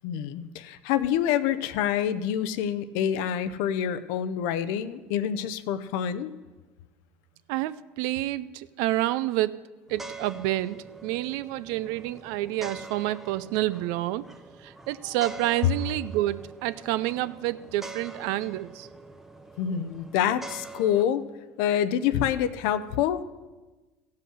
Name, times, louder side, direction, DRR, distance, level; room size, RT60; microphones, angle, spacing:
voice 1, 0.0-6.3 19.6-21.2 21.6-23.2, left 9 dB, 70° left, 14 dB, 0.6 m, -27 dB
voice 2, 7.5-9.5 9.9-14.2 14.6-18.9, right 16 dB, 70° right, 16 dB, 0.4 m, -28 dB
sound 1, 9.9-21.0, right 3 dB, 5° right, 0.7 m, -44 dB
15.0 x 5.6 x 6.3 m, 1.2 s
hypercardioid pair, 85°, 6 cm